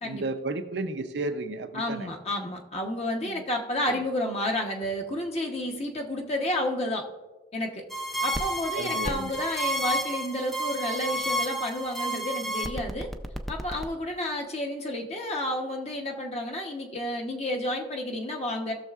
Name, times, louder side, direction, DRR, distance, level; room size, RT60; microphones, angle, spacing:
voice 1, 0.0-2.1 3.2-3.4 3.9-4.0 8.8-9.4, right 3 dB, 70° right, 7 dB, 0.6 m, -33 dB
voice 2, 1.7-7.0 7.5-7.8 8.2-13.1 13.5-18.7, left 1 dB, 35° left, 2 dB, 0.9 m, -31 dB
sound 1, 7.9-13.9, right 1 dB, ahead, 0.4 m, -30 dB
16.5 x 6.5 x 2.4 m, 1.2 s
head